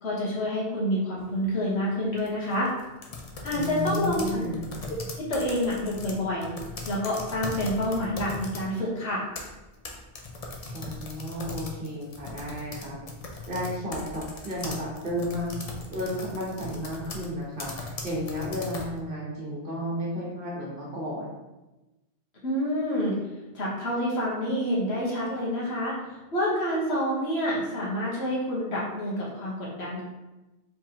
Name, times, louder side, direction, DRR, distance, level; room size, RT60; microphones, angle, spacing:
voice 1, 0.0-2.7 3.4-4.4 5.2-6.5 6.9-9.2 22.4-23.1 23.5-25.9 26.3-30.0, equal, 65° left, -5 dB, 1.5 m, -28 dB
sound 1, 1.2-1.5 2.1-8.7 9.1-19.0, left 3 dB, 45° left, 0.5 m, -39 dB
voice 2, 3.5-4.7 10.7-13.0 13.5-15.5 15.9-21.3, equal, 50° right, -4 dB, 1.3 m, -33 dB
4.7 x 3.7 x 2.8 m, 1.1 s
omnidirectional pair, 1.2 m